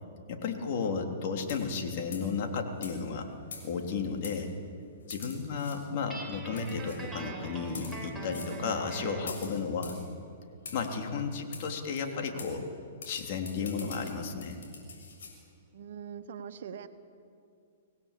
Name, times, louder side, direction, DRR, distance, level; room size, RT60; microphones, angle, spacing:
voice 1, 0.3-3.3 3.6-4.5 5.1-10.0 10.7-12.7 13.1-14.6, left 5 dB, 50° left, 3 dB, 3.4 m, -33 dB
sound 1, 1.5-1.8 2.1-2.3 2.8-2.9 3.5-3.9 4.2-4.4 5.1-5.8 6.6-7.0 7.6-8.0 8.3-8.5 9.3-10.0 10.6-10.9 11.5-11.6 12.0-12.1 12.4-12.5 13.0-15.3, left 5 dB, 70° left, 6.9 m, -44 dB
Guitar, 6.1-9.3, right 2 dB, 5° right, 5.0 m, -42 dB
voice 2, 15.7-16.9, right 7 dB, 65° right, 8 dB, 1.5 m, -42 dB
25.5 x 18.0 x 8.5 m, 2.4 s
hypercardioid pair, 120°, 0 cm